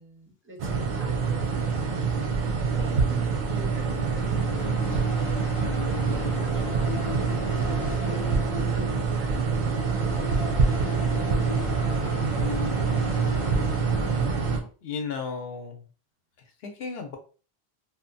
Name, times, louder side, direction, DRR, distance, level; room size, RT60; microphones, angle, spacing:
voice 1, 0.0-2.2 2.7-5.5 5.8-9.7, right 1 dB, 15° right, -1 dB, 0.6 m, -45 dB
sound 1, 0.6-14.6, right 5 dB, 60° right, 0.6 m, -26 dB
sound 2, 3.6-14.7, left 4 dB, 55° left, 0.3 m, -36 dB
voice 2, 14.8-15.9 16.4-17.2, left 5 dB, 75° left, 4 dB, 0.9 m, -34 dB
2.7 x 2.1 x 2.6 m, 0.37 s
omnidirectional pair, 1.0 m